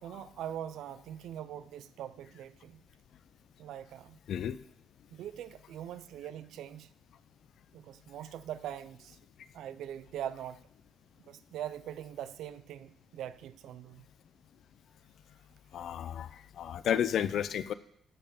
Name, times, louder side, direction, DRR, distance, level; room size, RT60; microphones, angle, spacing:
voice 1, 0.0-2.8 3.6-4.2 5.1-6.9 7.7-9.2 9.5-10.6 11.3-14.1, right 11 dB, 80° right, 0.5 m, -42 dB
voice 2, 15.7-16.3 16.6-17.7, left 9 dB, 70° left, 0.5 m, -31 dB
13.5 x 5.4 x 5.4 m
cardioid pair, 90°, 0 cm